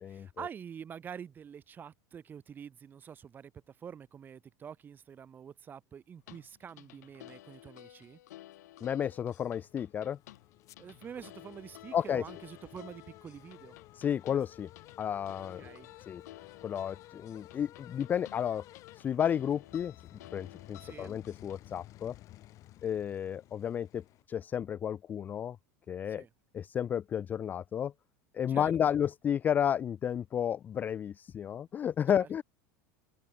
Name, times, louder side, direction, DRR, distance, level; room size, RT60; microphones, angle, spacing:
voice 1, 0.1-8.2 10.8-13.8 15.6-15.9 20.8-21.1 26.1-26.3 28.5-28.7 32.1-32.3, right 7 dB, 20° right, 3.9 m, -47 dB
sound 1, 6.2-21.6, left 15 dB, 90° left, 4.2 m, -54 dB
voice 2, 8.8-10.2 11.9-12.2 14.0-14.7 15.0-15.7 16.1-16.2 16.6-18.6 19.0-19.9 20.3-22.1 22.8-25.6 25.9-26.2 26.5-27.9 28.3-32.4, left 9 dB, 20° left, 0.3 m, -32 dB
sound 2, 9.6-24.2, left 15 dB, 40° left, 3.6 m, -54 dB
open air
supercardioid pair, 150°, 9 cm